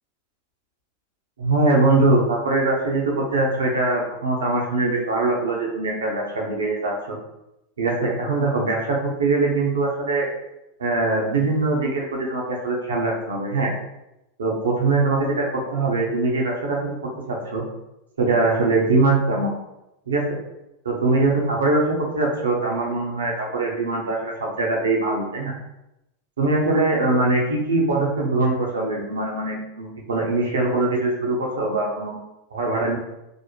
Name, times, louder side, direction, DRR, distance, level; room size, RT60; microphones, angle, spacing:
voice 1, 1.4-7.2 7.8-10.3 10.8-13.7 14.4-17.6 18.2-19.5 20.1-20.4 20.8-25.5 26.4-32.2 32.5-33.0, right 2 dB, 90° right, -2 dB, 0.8 m, -22 dB
2.5 x 2.1 x 3.0 m, 0.89 s
hypercardioid pair, 105°, 0 cm